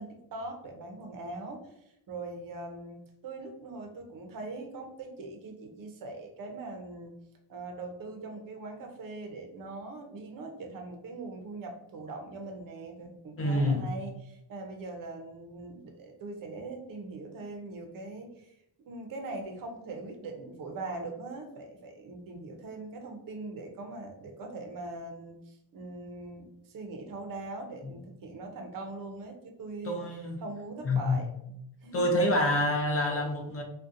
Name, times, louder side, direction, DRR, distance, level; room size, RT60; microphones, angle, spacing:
voice 1, 0.0-7.1 7.5-31.3 31.8-32.1, right 2 dB, 45° right, 3 dB, 0.5 m, -41 dB
voice 2, 13.4-13.9 27.8-27.9 29.8-30.4 30.8-31.2 31.9-33.6, left 1 dB, 30° left, 2 dB, 0.4 m, -27 dB
2.6 x 2.1 x 2.4 m, 0.78 s
wide cardioid pair, 155°, 48 cm